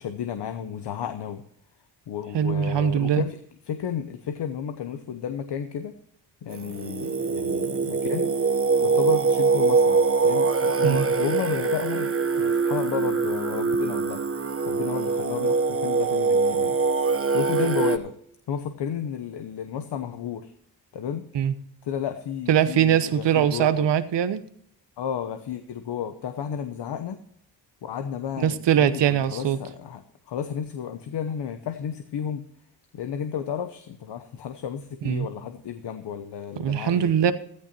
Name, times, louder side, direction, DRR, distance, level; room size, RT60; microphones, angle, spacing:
voice 1, 0.0-1.5 2.1-3.4 3.7-6.0 6.4-8.3 8.8-12.1 12.4-14.2 14.7-16.8 17.3-18.1 18.5-20.5 20.9-21.3 21.8-23.9 25.0-27.2 27.8-32.4 32.9-37.1, left 8 dB, 70° left, 0.9 m, -32 dB
voice 2, 2.3-3.2 10.8-11.1 21.3-21.5 22.5-24.4 28.4-29.6 35.0-35.3 36.6-37.3, right 9 dB, 75° right, 1.0 m, -22 dB
Singing, 6.5-18.0, right 4 dB, 30° right, 1.0 m, -23 dB
15.5 x 13.5 x 2.9 m
supercardioid pair, 45°, 43 cm